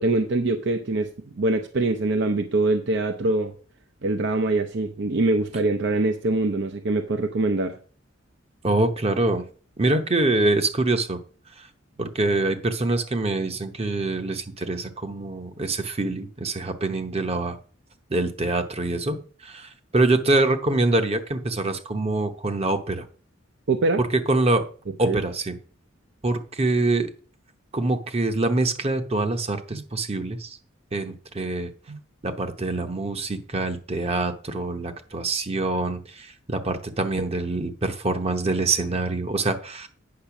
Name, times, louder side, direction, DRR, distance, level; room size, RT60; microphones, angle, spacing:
voice 1, 0.0-3.5 4.0-7.8 23.7-24.0 25.0-25.2 29.7-29.8 31.9-32.0, right 2 dB, 60° right, 7 dB, 0.6 m, -24 dB
voice 2, 8.6-9.4 9.8-11.2 11.6-11.7 12.0-17.6 18.1-19.2 19.4-23.0 24.0-24.6 25.0-25.6 26.2-27.1 27.7-30.6 30.9-31.7 32.2-39.9, right 2 dB, 30° right, 7 dB, 0.8 m, -25 dB
8.6 x 5.3 x 5.9 m, 0.41 s
head